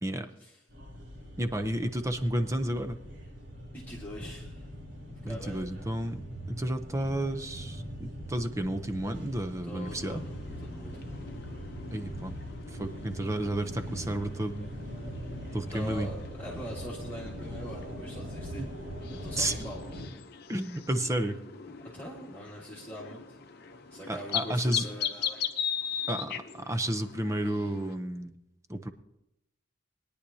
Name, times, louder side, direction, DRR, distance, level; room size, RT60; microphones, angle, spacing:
sound 1, 0.7-20.1, equal, 65° right, 3.7 m, -41 dB
voice 1, 1.4-3.0 5.2-10.2 11.9-12.3 12.7-14.7 15.5-16.1 18.6-18.7 19.3-19.5 20.5-21.4 24.1-24.9 26.1-28.3 28.7-28.9, right 1 dB, 15° right, 9 dB, 0.6 m, -32 dB
voice 2, 3.7-4.7 5.2-5.6 9.6-10.3 10.6-11.0 15.7-18.6 19.0-19.8 21.9-23.4 23.9-25.4, equal, 10° left, -6 dB, 1.7 m, -43 dB
sound 2, 9.8-27.9, left 8 dB, 50° left, 0.7 m, -40 dB
21.5 x 10.0 x 2.8 m, 0.86 s
head